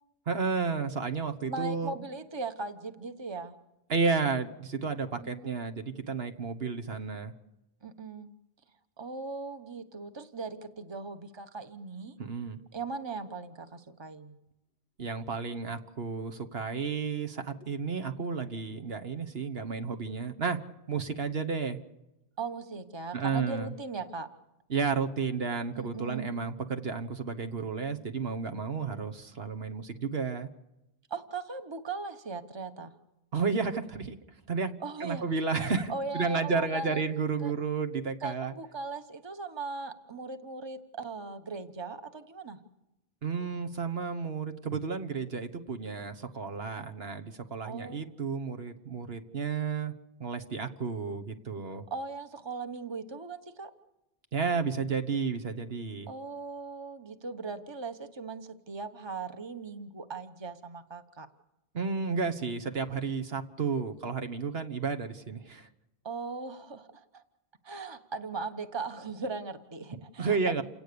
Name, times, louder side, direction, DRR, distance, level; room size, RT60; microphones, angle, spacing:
voice 1, 0.3-2.0 3.9-7.3 12.2-12.6 15.0-20.6 20.9-21.8 23.1-23.7 24.7-30.5 33.3-34.2 34.5-34.7 35.0-38.5 43.2-49.9 50.2-51.9 54.3-56.1 61.7-65.7 70.2-70.6, right 5 dB, 70° right, 8 dB, 1.6 m, -32 dB
voice 2, 1.5-3.6 5.2-5.6 7.8-8.3 9.0-12.1 12.7-14.4 22.4-24.3 25.7-26.3 31.1-33.0 34.8-35.2 35.9-37.0 37.4-37.5 38.2-42.6 47.6-48.0 51.7-53.7 56.1-61.3 66.0-67.2 67.6-70.6, right 4 dB, 25° right, 8 dB, 1.2 m, -39 dB
28.5 x 18.0 x 6.9 m, 0.92 s
omnidirectional pair, 1.1 m